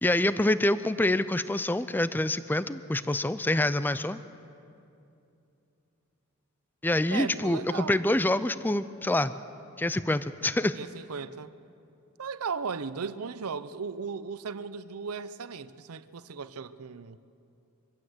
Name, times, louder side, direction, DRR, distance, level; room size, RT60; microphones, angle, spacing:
voice 1, 0.0-4.2 6.8-9.3 9.8-10.8, left 1 dB, 10° left, 0.4 m, -26 dB
voice 2, 7.1-8.0 10.7-11.5 12.2-17.2, right 5 dB, 90° right, 0.6 m, -36 dB
24.0 x 15.5 x 7.9 m
head